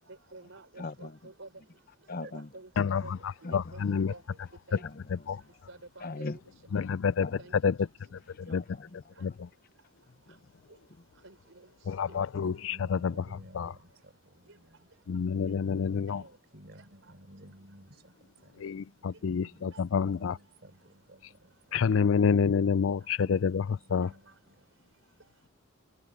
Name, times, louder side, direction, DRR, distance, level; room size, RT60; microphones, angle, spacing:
voice 1, 0.1-1.5 2.1-3.1 3.4-4.2 4.7-4.8 5.7-6.3 6.8-6.9 7.2-7.5 8.5-8.6 11.2-11.7 12.1-12.2 15.5-15.6 16.2-16.3 19.7-19.8 24.3-24.4, right 2 dB, 80° right, 3.9 m, -50 dB
voice 2, 0.8-1.3 2.1-2.5 3.0-3.1 3.4-3.8 4.8-5.7 6.0-6.4 7.2-7.6 8.3-9.4 10.0-10.5 10.9-11.0, left 3 dB, 50° left, 0.9 m, -42 dB
voice 3, 2.8-4.1 5.1-5.4 6.7-7.3 7.6-8.6 9.2-9.5 11.9-13.2 13.5-13.7 15.1-16.2 18.6-20.4 21.7-24.1, left 6 dB, 80° left, 0.4 m, -28 dB
voice 4, 12.3-15.1 15.9-22.2 23.2-24.7, right 1 dB, 55° right, 6.2 m, -55 dB
head